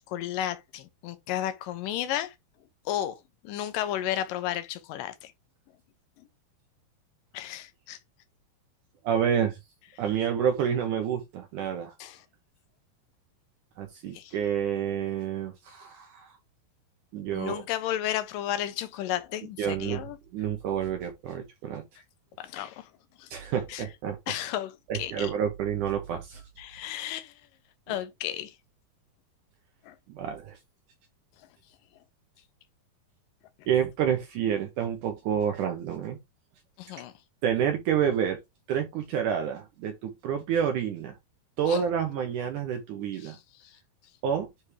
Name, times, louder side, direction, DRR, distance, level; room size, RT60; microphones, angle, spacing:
voice 1, 0.0-2.3 2.9-5.3 6.2-6.3 7.3-8.0 12.0-12.2 14.1-14.4 17.3-20.2 22.4-22.9 23.2-23.3 23.7-23.9 24.3-25.3 26.6-27.3 27.9-28.5 29.8-30.0 36.8-37.1 41.7-41.8 43.2-43.7, left 12 dB, 75° left, 2.3 m, -33 dB
voice 2, 9.0-9.6 10.0-11.9 13.8-16.3 17.1-17.6 19.6-20.1 20.3-21.8 23.3-24.2 24.9-26.4 30.1-30.6 33.7-36.2 37.4-38.4 38.7-41.1 41.6-43.4 44.2-44.5, right 8 dB, 70° right, 2.2 m, -28 dB
9.9 x 3.5 x 3.3 m
omnidirectional pair, 4.4 m